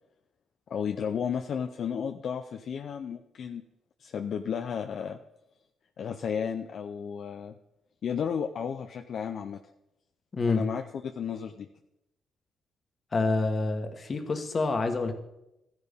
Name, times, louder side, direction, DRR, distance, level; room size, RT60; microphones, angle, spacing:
voice 1, 0.7-3.6 4.0-5.2 6.0-7.5 8.0-9.6 10.4-11.7, left 7 dB, 60° left, 6 dB, 0.6 m, -33 dB
voice 2, 10.3-10.7 13.1-15.1, left 3 dB, 35° left, 6 dB, 1.4 m, -27 dB
14.0 x 10.5 x 3.6 m, 0.90 s
cardioid pair, 90°, 0 cm